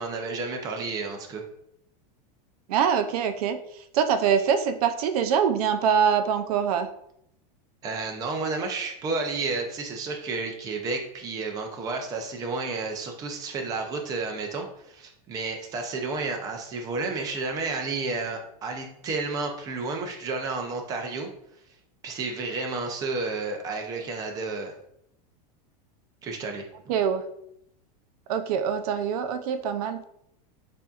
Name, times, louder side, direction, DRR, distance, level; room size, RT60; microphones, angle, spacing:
voice 1, 0.0-1.4 7.8-21.3 22.0-24.7 26.2-26.7, right 3 dB, 20° right, 3 dB, 0.5 m, -31 dB
voice 2, 2.7-6.9 26.9-27.2 28.3-30.0, right 7 dB, 65° right, 9 dB, 0.5 m, -24 dB
6.8 x 2.6 x 2.4 m, 0.74 s
supercardioid pair, 165°, 21 cm